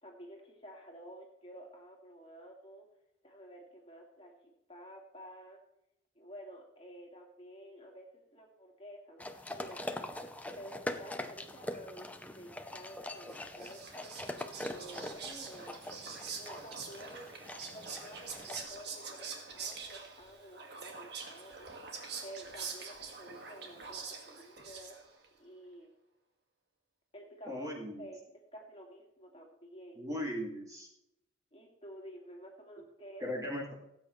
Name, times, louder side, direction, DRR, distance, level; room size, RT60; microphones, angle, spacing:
voice 1, 0.0-2.9 3.2-5.6 6.2-14.2 14.6-17.3 17.7-25.0 25.4-25.9 27.1-27.7 28.0-28.2 28.5-30.0 31.5-33.3, equal, 30° left, 0 dB, 2.3 m, -51 dB
sound 1, 9.2-18.7, left 1 dB, 10° left, 0.7 m, -43 dB
Whispering, 13.3-25.3, right 5 dB, 55° right, 1.9 m, -45 dB
voice 2, 27.5-28.1 30.0-30.9 33.2-33.7, equal, 15° right, -1 dB, 2.4 m, -38 dB
18.0 x 8.7 x 3.2 m, 0.84 s
head